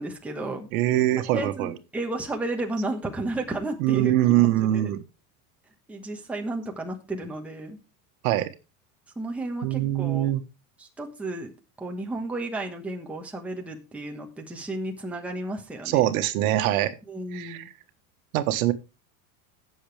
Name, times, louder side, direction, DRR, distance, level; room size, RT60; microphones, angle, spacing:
voice 1, 0.0-0.7 1.2-4.1 4.7-4.9 5.9-7.8 9.2-10.3 10.8-16.0 17.1-17.7, right 2 dB, 5° right, 1 dB, 1.2 m, -33 dB
voice 2, 0.7-1.7 3.8-5.0 8.2-8.5 9.6-10.4 15.8-17.0 17.3-17.7 18.3-18.7, right 14 dB, 70° right, 9 dB, 1.4 m, -23 dB
17.5 x 7.2 x 3.4 m, 0.29 s
supercardioid pair, 170°, 44 cm